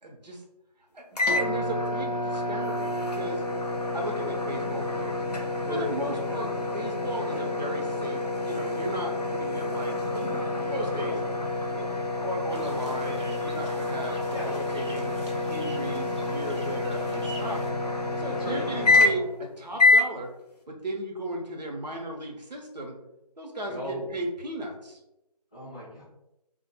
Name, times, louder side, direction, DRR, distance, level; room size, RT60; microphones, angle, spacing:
voice 1, 0.0-0.4 0.9-3.4 3.9-5.2 5.7-6.5 6.7-11.2 11.7-15.2 15.5-17.6 18.2-19.2 19.6-20.3 20.7-23.0 23.4-25.0, right 1 dB, 85° right, 1 dB, 0.7 m, -36 dB
sound 1, 1.1-19.4 19.8-20.1, left 2 dB, 75° left, 0.5 m, -28 dB
voice 2, 5.6-6.4 7.3-7.4 10.9-11.1 14.3-14.5 16.9-17.1 18.3-19.1 23.7-24.1 25.5-26.0, left 1 dB, 10° left, -12 dB, 0.5 m, -37 dB
sound 2, 12.5-17.7, right 1 dB, 45° right, 0.5 m, -45 dB
2.1 x 2.1 x 3.0 m, 0.88 s
figure-of-eight pair, 160°, 21 cm